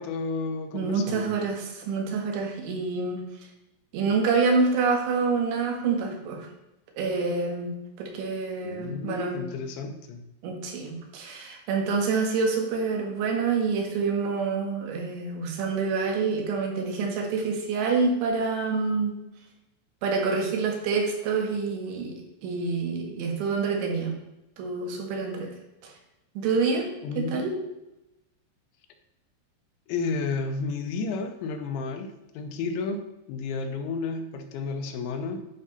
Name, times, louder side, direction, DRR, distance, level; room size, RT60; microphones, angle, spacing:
voice 1, 0.0-1.4 8.6-10.2 27.0-27.5 29.9-35.5, left 4 dB, 90° left, 6 dB, 3.3 m, -32 dB
voice 2, 0.7-3.2 3.9-6.5 7.0-9.4 10.4-19.2 20.0-22.2 22.4-24.1 24.6-25.5 26.4-26.9 27.2-27.5, right 4 dB, 90° right, 1 dB, 4.1 m, -27 dB
11.5 x 5.0 x 5.4 m, 0.93 s
omnidirectional pair, 5.2 m